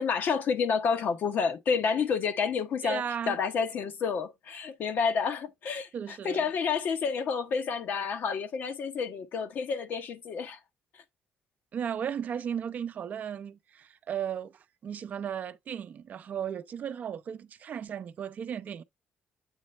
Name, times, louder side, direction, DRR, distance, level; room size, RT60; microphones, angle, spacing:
voice 1, 0.0-10.6, left 6 dB, 65° left, 0.9 m, -29 dB
voice 2, 2.8-3.4 5.9-6.4 11.7-18.8, right 8 dB, 50° right, 0.5 m, -35 dB
8.2 x 3.1 x 4.3 m
cardioid pair, 110°, 3 cm